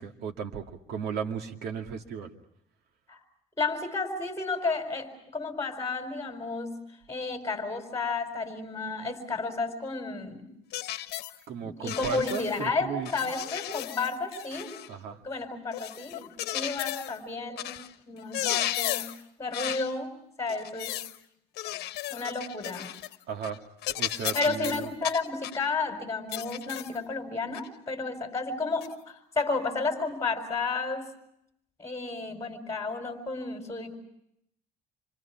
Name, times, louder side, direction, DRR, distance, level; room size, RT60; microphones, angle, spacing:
voice 1, 0.0-2.3 11.5-13.3 14.9-15.2 23.3-23.6 23.9-24.9, right 6 dB, 75° right, 4 dB, 2.3 m, -35 dB
voice 2, 3.6-6.7 7.1-10.5 11.6-14.8 15.2-17.8 18.1-19.1 19.4-20.1 20.4-21.0 22.1-22.9 24.3-31.1 31.8-34.0, left 3 dB, 20° left, 5 dB, 4.6 m, -32 dB
sound 1, 10.7-11.4 11.9-12.6 13.1-14.9 15.7-17.2 17.6-17.9 18.2-19.2 19.5-19.9 20.5-21.2 21.6-23.2 23.4-23.6 23.8-25.6 26.3-27.0 27.5-27.7 28.8-28.9, left 14 dB, 75° left, 1.1 m, -34 dB
27.5 x 25.5 x 5.9 m, 0.77 s
cardioid pair, 110°, 17 cm